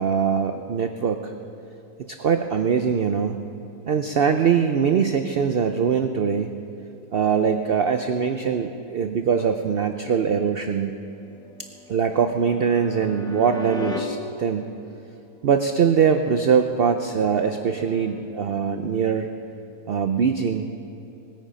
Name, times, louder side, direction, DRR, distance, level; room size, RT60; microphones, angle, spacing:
voice 1, 0.0-1.3 2.1-3.4 3.9-6.6 7.1-10.9 11.9-14.7 15.4-19.3 19.9-20.7, right 6 dB, 70° right, 7 dB, 0.5 m, -22 dB
sound 1, 11.2-14.0 17.0-18.2, left 2 dB, 5° left, 0.8 m, -38 dB
19.5 x 9.0 x 5.1 m, 2.9 s
omnidirectional pair, 1.6 m